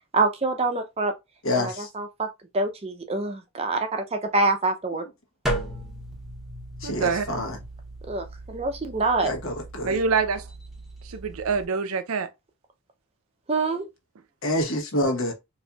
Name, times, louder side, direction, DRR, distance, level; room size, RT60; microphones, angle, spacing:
voice 1, 0.1-1.1 1.6-2.3 2.5-5.1 8.1-9.3 13.5-13.9, right 3 dB, 30° right, 0.5 m, -26 dB
voice 2, 1.4-1.9 6.8-7.6 9.2-10.0 14.4-15.3, left 1 dB, 70° left, 1.1 m, -27 dB
sound 1, 5.4-11.6, right 1 dB, ahead, 0.8 m, -36 dB
voice 3, 6.8-7.5 9.8-10.5 11.1-12.3, right 5 dB, 80° right, 0.5 m, -26 dB
4.2 x 2.6 x 2.3 m
head